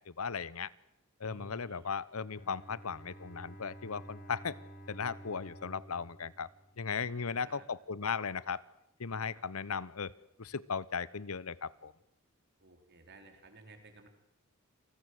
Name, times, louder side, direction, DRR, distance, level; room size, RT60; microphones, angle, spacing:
voice 1, 0.1-0.7 1.2-4.6 4.9-6.5 6.8-8.6 9.0-10.1 10.4-11.9, left 5 dB, 75° left, 20 dB, 0.9 m, -37 dB
voice 2, 1.2-1.9 7.0-7.7 12.6-14.1, right 2 dB, 55° right, 6 dB, 4.3 m, -55 dB
Bowed string instrument, 2.3-7.2, right 1 dB, 40° left, 5.6 m, -52 dB
28.5 x 19.0 x 7.9 m, 0.77 s
head